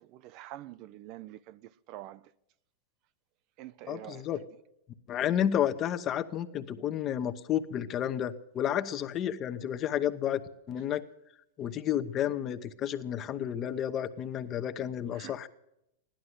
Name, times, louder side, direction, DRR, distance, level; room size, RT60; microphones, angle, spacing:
voice 1, 0.0-2.2 3.6-4.3 15.1-15.5, right 14 dB, 45° right, 0.5 m, -46 dB
voice 2, 3.9-4.4 5.1-10.4 10.7-11.0 11.6-15.5, left 10 dB, 35° left, 0.9 m, -31 dB
16.0 x 11.5 x 7.9 m
hypercardioid pair, 125°, 0 cm